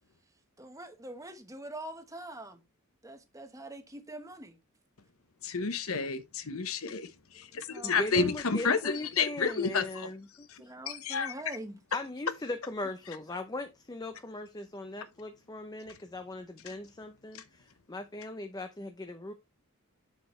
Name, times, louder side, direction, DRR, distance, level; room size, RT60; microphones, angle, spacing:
voice 1, 0.6-2.6 3.0-4.6 7.7-8.1 10.6-11.8, right 1 dB, 15° right, 1.1 m, -44 dB
voice 2, 5.4-7.1 7.3-10.1 10.5-11.3, left 5 dB, 70° left, 0.9 m, -30 dB
voice 3, 7.8-10.7 11.9-19.3, left 2 dB, 15° left, 0.6 m, -39 dB
7.2 x 6.8 x 3.1 m
head